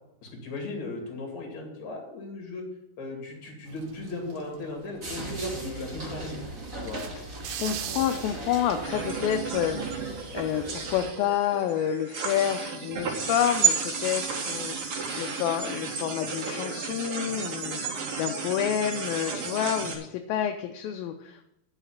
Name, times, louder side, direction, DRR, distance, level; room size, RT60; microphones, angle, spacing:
voice 1, 0.2-2.6 3.0-6.4 6.8-7.0, left 2 dB, 50° left, 1 dB, 3.4 m, -37 dB
sound 1, 3.7-9.3, right 10 dB, 80° right, 2.5 m, -42 dB
sound 2, 5.0-11.1, right 2 dB, 25° right, 2.0 m, -38 dB
voice 2, 7.4-21.4, left 10 dB, 80° left, 6 dB, 2.2 m, -29 dB
sound 3, 8.8-19.9, right 6 dB, 60° right, 1.4 m, -32 dB
10.0 x 5.8 x 7.1 m, 0.84 s
omnidirectional pair, 4.6 m